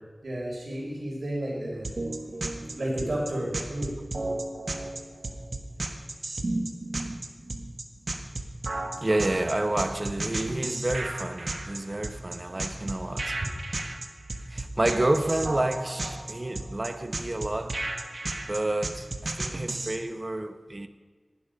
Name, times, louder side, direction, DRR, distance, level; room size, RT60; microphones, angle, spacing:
voice 1, 0.2-1.9 2.7-3.9, right 1 dB, 85° right, 5.2 m, -31 dB
sound 1, 1.8-20.0, right 2 dB, 60° right, 1.5 m, -33 dB
voice 2, 9.0-13.4 14.5-17.8 18.5-20.9, right 1 dB, 35° right, 1.0 m, -29 dB
19.0 x 12.0 x 5.3 m
wide cardioid pair, 60°, 0 cm